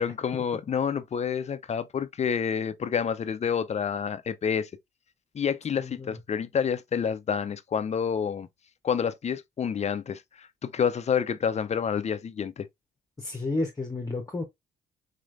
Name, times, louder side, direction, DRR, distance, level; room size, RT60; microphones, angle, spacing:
voice 1, 0.0-4.7 5.3-8.5 8.8-12.7, left 7 dB, 35° left, 0.5 m, -28 dB
voice 2, 5.8-6.2 13.2-14.4, left 2 dB, 20° left, 0.9 m, -31 dB
4.1 x 3.1 x 2.5 m
cardioid pair, 90°, 20 cm